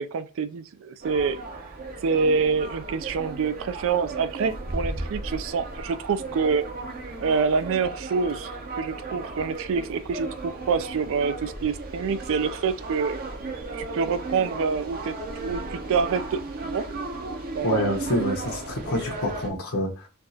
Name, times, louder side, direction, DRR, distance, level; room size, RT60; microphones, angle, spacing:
voice 1, 0.0-1.4 2.0-6.7 7.2-8.5 8.8-13.2 13.7-16.8 17.5-18.0, right 5 dB, 65° right, 0.4 m, -26 dB
sound 1, 1.0-19.5, right 2 dB, 45° right, 0.7 m, -35 dB
voice 2, 17.6-20.1, left 1 dB, 80° left, 1.0 m, -27 dB
4.5 x 2.4 x 2.7 m
head